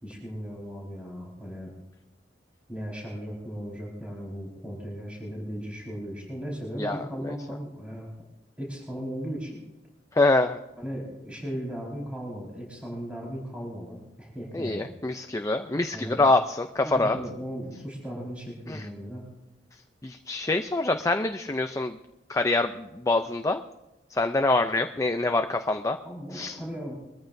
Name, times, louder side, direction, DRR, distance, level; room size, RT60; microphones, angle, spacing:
voice 1, 0.0-1.7 2.7-8.1 8.6-9.6 10.8-14.9 15.9-16.2 16.8-19.2 26.0-26.9, equal, 5° right, -4 dB, 4.7 m, -37 dB
voice 2, 6.8-7.3 10.1-10.6 14.5-17.2 18.7-18.8 20.0-22.0 22.3-23.6 24.1-26.0 26.3-26.6, left 2 dB, 20° left, 7 dB, 0.5 m, -25 dB
22.5 x 14.0 x 2.7 m, 1.0 s
head